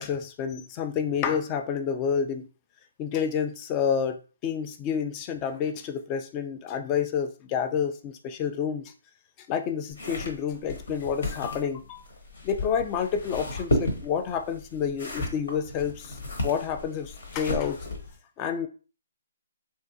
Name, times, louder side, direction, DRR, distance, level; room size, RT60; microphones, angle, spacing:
voice 1, 0.0-2.5 3.0-8.9 9.5-12.0 12.4-17.9 18.4-18.7, left 7 dB, 20° left, 8 dB, 0.3 m, -29 dB
sound 1, 9.9-18.2, left 1 dB, 65° left, 1.1 m, -33 dB
3.3 x 2.7 x 2.6 m, 0.36 s
hypercardioid pair, 160°, 0 cm